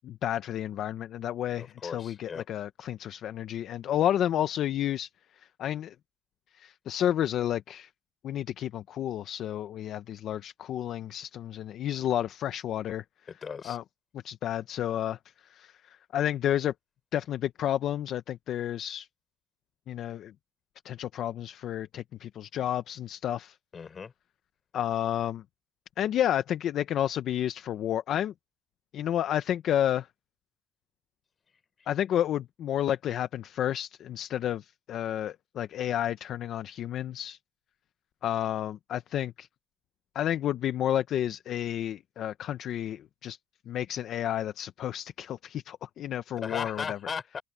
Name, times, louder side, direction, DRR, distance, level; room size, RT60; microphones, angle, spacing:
voice 1, 0.0-5.1 5.6-5.9 6.5-7.9 8.2-13.0 13.6-13.8 14.2-15.2 15.5-16.7 17.1-19.1 19.9-20.3 20.8-23.6 24.7-25.4 26.0-28.3 28.9-30.1 31.9-37.4 38.2-39.5 40.1-43.4 43.7-47.0, left 11 dB, 45° left, 0.6 m, -31 dB
voice 2, 1.8-2.4 13.3-13.8 23.7-24.1 46.4-47.4, left 6 dB, 25° left, 5.2 m, -37 dB
open air
cardioid pair, 170°, 0 cm